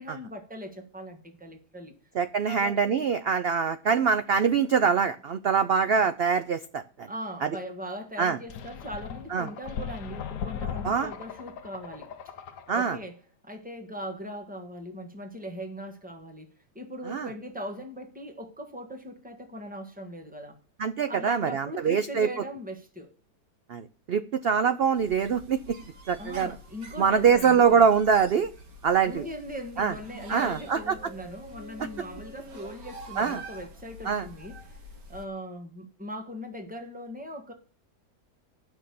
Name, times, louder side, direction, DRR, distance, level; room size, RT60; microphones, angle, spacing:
voice 1, 0.0-1.9 2.5-3.0 7.1-12.1 12.7-13.2 13.4-20.6 21.1-23.1 26.2-27.8 29.0-34.8 35.1-37.5, equal, 5° right, 1.4 m, -40 dB
voice 2, 2.2-7.1 7.4-7.5 8.2-8.4 9.3-9.5 10.8-11.1 12.7-13.0 17.1-17.3 20.8-22.3 23.7-25.6 26.1-26.5 27.0-28.5 28.8-29.2 29.8-29.9 30.3-30.8 33.2-33.4 34.1-34.3, right 6 dB, 85° right, 0.5 m, -24 dB
sound 1, 8.5-13.0, left 7 dB, 60° left, 1.0 m, -38 dB
sound 2, 25.0-35.3, right 1 dB, 65° right, 2.1 m, -46 dB
9.0 x 6.2 x 6.9 m
omnidirectional pair, 1.7 m